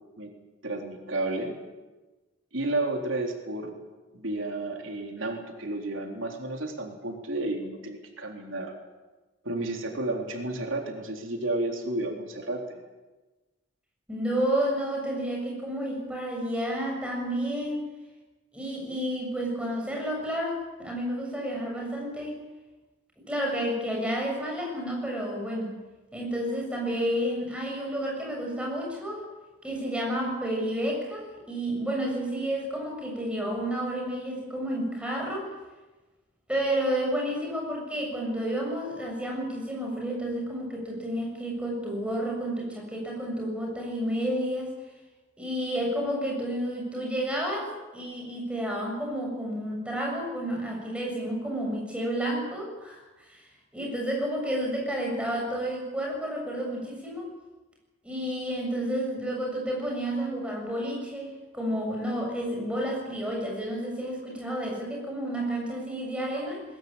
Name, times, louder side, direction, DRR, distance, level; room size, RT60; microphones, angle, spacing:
voice 1, 0.6-1.6 2.5-3.8 4.1-8.7 9.4-12.8, right 2 dB, 85° right, 2 dB, 3.7 m, -32 dB
voice 2, 14.1-17.8 18.5-22.4 23.3-25.8 26.1-29.3 29.6-35.5 36.5-44.7 45.4-53.5 53.7-57.3 58.0-66.6, equal, 5° right, 0 dB, 6.9 m, -31 dB
22.0 x 20.5 x 8.8 m, 1.2 s
head